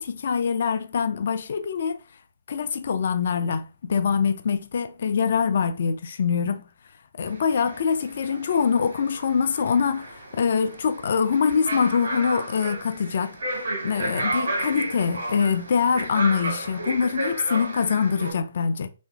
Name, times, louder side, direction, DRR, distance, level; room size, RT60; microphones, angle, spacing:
voice 1, 0.0-2.0 2.5-6.6 7.2-13.4 13.8-18.9, left 6 dB, 55° left, 0.3 m, -24 dB
sound 1, 7.3-18.3, right 2 dB, 65° right, 1.3 m, -33 dB
2.9 x 2.5 x 2.3 m
figure-of-eight pair, 135°, 0 cm